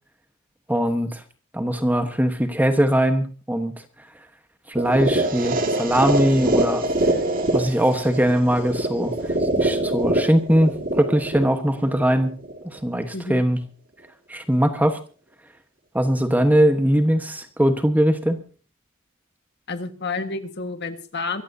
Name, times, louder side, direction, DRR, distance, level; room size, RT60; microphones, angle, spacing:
voice 1, 0.7-1.2 1.5-3.7 4.7-6.8 7.5-12.3 12.7-13.6 14.3-15.0 15.9-18.4, equal, 10° right, 8 dB, 1.2 m, -21 dB
sound 1, 4.8-12.8, right 1 dB, 40° right, 2.1 m, -24 dB
voice 2, 19.7-21.4, left 3 dB, 50° left, 8 dB, 1.6 m, -30 dB
24.5 x 15.0 x 2.8 m, 0.38 s
head